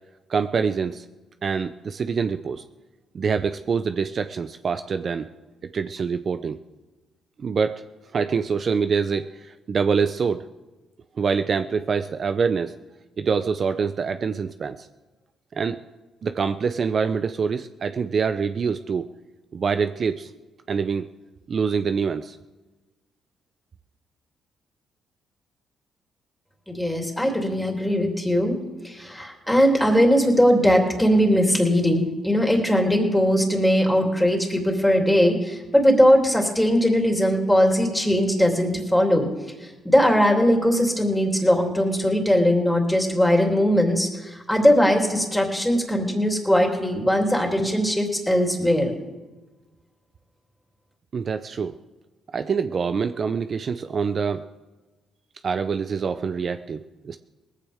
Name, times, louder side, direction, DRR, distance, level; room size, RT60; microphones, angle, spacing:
voice 1, 0.3-1.0 1.4-2.6 3.1-5.3 5.7-6.6 7.4-7.8 8.1-10.5 11.2-12.7 13.2-14.9 15.5-15.8 16.2-19.1 19.5-20.3 20.7-21.1 21.5-22.4 51.1-51.7 52.3-54.4 55.4-57.2, right 5 dB, 45° right, 9 dB, 0.5 m, -25 dB
voice 2, 26.7-28.6 28.8-39.3 39.6-48.9, equal, 5° left, 1 dB, 3.0 m, -20 dB
19.0 x 15.0 x 3.6 m, 1.1 s
cardioid pair, 90°, 0 cm